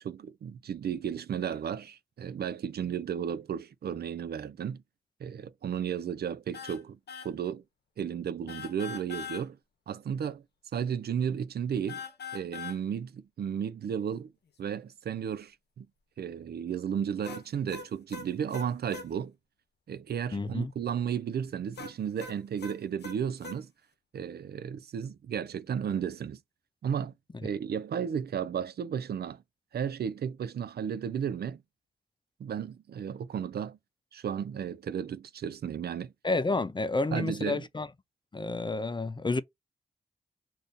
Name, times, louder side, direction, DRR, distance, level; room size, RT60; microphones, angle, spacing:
voice 1, 0.0-4.8 5.2-7.0 7.2-7.6 8.0-9.6 9.9-10.4 10.7-12.0 12.3-14.3 14.6-15.9 16.2-19.3 19.9-23.7 24.1-26.4 26.8-27.1 27.4-29.4 29.7-31.6 32.4-33.8 34.1-36.1 37.1-37.7, right 8 dB, 70° right, 0.4 m, -34 dB
sound 1, 6.5-6.8 7.1-7.3 8.5-9.4 11.9-12.8 17.2-19.1 21.8-23.6, left 6 dB, 75° left, 0.8 m, -42 dB
voice 2, 20.3-20.7 36.2-37.9 38.3-39.4, left 3 dB, 25° left, 0.5 m, -30 dB
2.6 x 2.6 x 3.5 m
cardioid pair, 40°, 17 cm